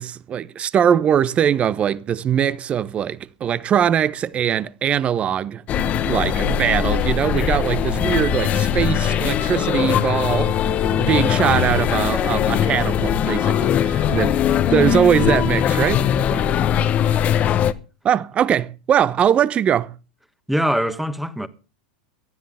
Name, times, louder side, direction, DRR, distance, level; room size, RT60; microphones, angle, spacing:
voice 1, 0.0-5.6 6.0-10.5 10.9-14.4 14.7-16.0 18.0-19.9, right 9 dB, 30° right, 1.0 m, -21 dB
sound 1, 5.7-17.7, left 9 dB, 35° left, 1.1 m, -20 dB
voice 2, 16.3-16.6 20.5-21.5, equal, 5° right, 1.5 m, -23 dB
18.0 x 13.0 x 3.6 m
hypercardioid pair, 95°, 4 cm